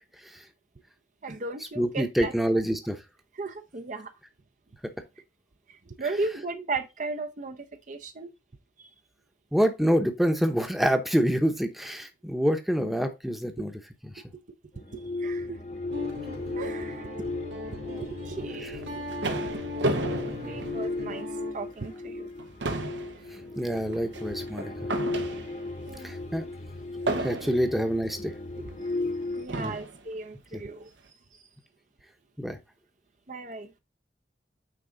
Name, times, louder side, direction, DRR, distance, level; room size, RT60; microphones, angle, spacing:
voice 1, 1.2-2.3 3.3-4.1 5.7-8.3 8.8-8.9 14.3-14.4 14.9-15.6 16.5-17.1 17.7-19.0 19.5-19.6 20.3-21.3 21.5-22.3 23.6-23.7 25.9-26.2 28.6-28.8 29.4-30.9 31.3-31.5 33.3-33.7, right 3 dB, 45° right, 0.7 m, -36 dB
voice 2, 1.8-3.0 9.5-13.7 20.2-20.6 23.6-24.9 26.0-26.4 27.2-28.3 29.6-29.7 30.5-30.6 32.4-32.6, equal, ahead, 0.9 m, -26 dB
sound 1, 14.7-29.5, left 2 dB, 40° left, 1.0 m, -36 dB
Guitar, 15.9-21.5, left 2 dB, 70° right, 2.4 m, -38 dB
sound 2, 18.7-21.4 21.8-22.0 22.3-25.8 27.1-27.8 28.7-28.8 29.5-30.0, right 2 dB, 85° right, 1.2 m, -33 dB
9.0 x 3.7 x 3.9 m
head